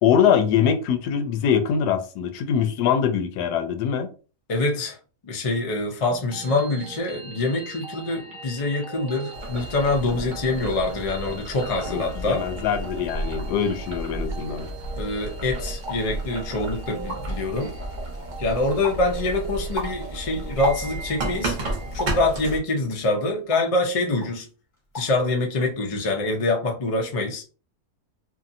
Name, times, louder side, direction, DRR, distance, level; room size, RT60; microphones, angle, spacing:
voice 1, 0.0-4.1 11.9-14.7, left 8 dB, 85° left, 1.2 m, -23 dB
voice 2, 4.5-5.0 5.2-12.4 15.0-17.8 18.4-21.6 21.9-24.5 24.9-27.4, left 2 dB, 50° left, 0.4 m, -25 dB
sound 1, 6.1-22.0, right 5 dB, 80° right, 1.3 m, -42 dB
Boiling, 9.3-22.6, right 1 dB, 45° right, 0.7 m, -33 dB
sound 2, 15.8-16.1 16.7-16.8 16.9-17.5 17.9-18.4 18.8-19.1 19.5-21.2 22.0-22.3 22.9-23.8 24.2-24.4 24.7-25.2 25.5-26.0, left 1 dB, 35° left, 1.1 m, -34 dB
2.8 x 2.6 x 2.6 m
omnidirectional pair, 1.7 m